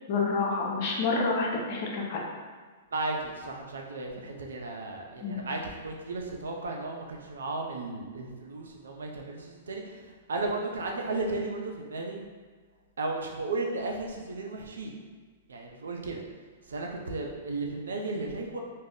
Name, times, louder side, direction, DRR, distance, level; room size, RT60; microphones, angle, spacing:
voice 1, 0.1-2.2 5.2-5.4, left 4 dB, 50° left, -2 dB, 0.6 m, -28 dB
voice 2, 2.9-12.2 13.0-14.9 15.5-16.2 16.7-18.6, right 2 dB, 80° right, 1 dB, 0.5 m, -34 dB
2.3 x 2.0 x 3.5 m, 1.5 s
hypercardioid pair, 120°, 0 cm